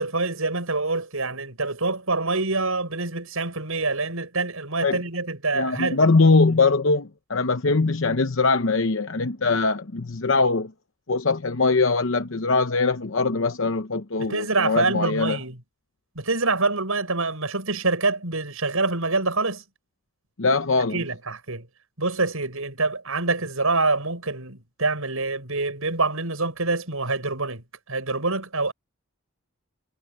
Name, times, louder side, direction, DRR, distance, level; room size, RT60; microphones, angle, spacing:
voice 1, 0.0-6.0 14.2-15.6 16.2-19.6 20.9-21.7 22.0-28.7, right 3 dB, 80° right, 6.2 m, -26 dB
voice 2, 5.5-10.7 11.1-15.4 20.4-21.0, left 3 dB, 60° left, 0.8 m, -22 dB
head